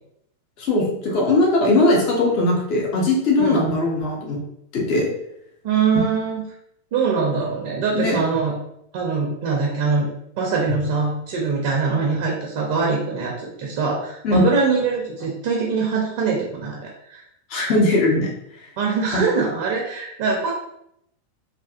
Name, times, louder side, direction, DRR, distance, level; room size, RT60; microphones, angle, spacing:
voice 1, 0.6-4.4 4.7-5.1 7.9-8.2 14.2-14.5 17.5-18.3 18.6-18.7, left 2 dB, 40° left, -2 dB, 0.7 m, -19 dB
voice 2, 5.6-6.4 6.9-8.5 8.9-10.1 10.4-17.2 17.5-17.7 18.8-20.5, right 5 dB, 50° right, -1 dB, 0.5 m, -23 dB
2.5 x 2.3 x 2.4 m, 0.77 s
figure-of-eight pair, 90°, 0 cm